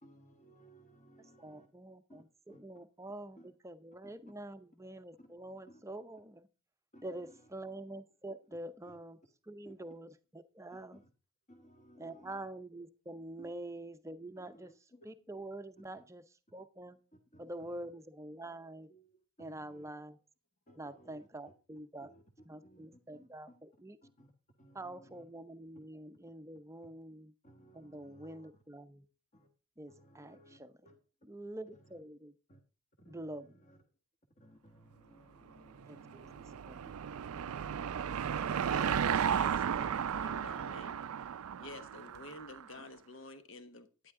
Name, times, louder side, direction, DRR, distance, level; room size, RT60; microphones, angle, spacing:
voice 1, 0.0-1.7 2.1-2.2 2.5-2.6 3.4-3.5 5.2-5.3 5.7-5.8 6.9-7.5 8.9-9.0 9.6-9.7 10.7-11.1 11.5-12.5 13.4-13.5 14.4-15.1 15.9-16.0 17.1-17.7 18.9-19.9 20.7-21.5 22.0-23.6 24.0-24.3 24.6-25.2 27.4-28.5 29.3-29.5 29.9-30.9 31.7-31.8 32.5-32.6 33.0-33.8 34.4-40.0, equal, 35° left, 1.4 m, -60 dB
voice 2, 1.2-6.5 7.0-9.2 9.5-11.0 12.0-14.7 15.0-16.2 16.5-17.0 17.4-18.9 19.4-20.2 20.8-22.1 22.5-24.0 24.7-27.3 27.7-29.0 29.8-30.8 31.2-32.3 33.1-33.7 35.9-36.3 36.7-36.8, right 1 dB, 15° right, 0.6 m, -46 dB
Car passing by / Engine, 35.8-42.6, right 8 dB, 80° right, 0.4 m, -34 dB
voice 3, 38.6-41.0 41.6-44.1, left 2 dB, 60° left, 1.3 m, -50 dB
11.5 x 9.7 x 3.6 m
head